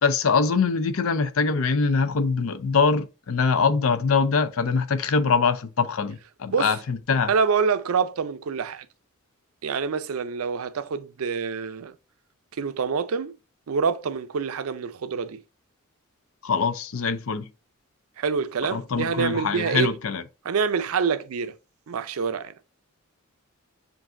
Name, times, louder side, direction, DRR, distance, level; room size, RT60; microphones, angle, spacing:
voice 1, 0.0-7.3 16.4-17.5 18.7-20.2, left 5 dB, 75° left, 0.6 m, -23 dB
voice 2, 7.3-8.9 9.6-11.9 12.6-13.3 13.7-15.4 18.2-19.9 20.5-21.6 21.9-22.5, right 5 dB, 80° right, 0.4 m, -26 dB
7.2 x 2.6 x 2.6 m
head